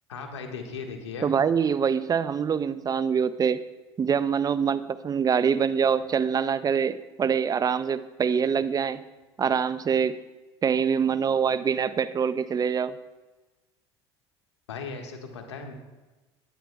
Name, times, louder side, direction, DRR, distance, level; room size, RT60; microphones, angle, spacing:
voice 1, 0.1-1.3 14.7-15.7, left 4 dB, 90° left, 4 dB, 1.5 m, -37 dB
voice 2, 1.2-3.6 4.0-9.0 9.4-10.2 10.6-12.9, right 7 dB, 25° right, 15 dB, 0.5 m, -24 dB
17.5 x 11.0 x 2.3 m, 1.2 s
hypercardioid pair, 80°, 14 cm